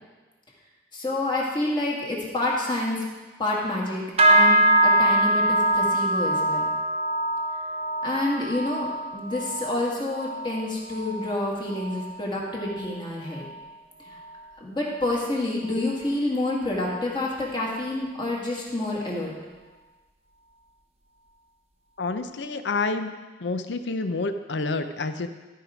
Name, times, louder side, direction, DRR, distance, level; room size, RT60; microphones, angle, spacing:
voice 1, 0.9-3.0 3.4-6.7 8.0-13.5 14.0-14.2 14.6-19.3, left 2 dB, 25° left, -3 dB, 1.8 m, -28 dB
sound 1, 4.2-13.7 14.0-14.5 14.9-15.2 15.8-15.9, right 1 dB, 35° right, 0.7 m, -24 dB
voice 2, 22.0-23.1 23.4-25.3, left 3 dB, 80° left, 9 dB, 0.6 m, -28 dB
13.0 x 4.8 x 5.0 m, 1.3 s
head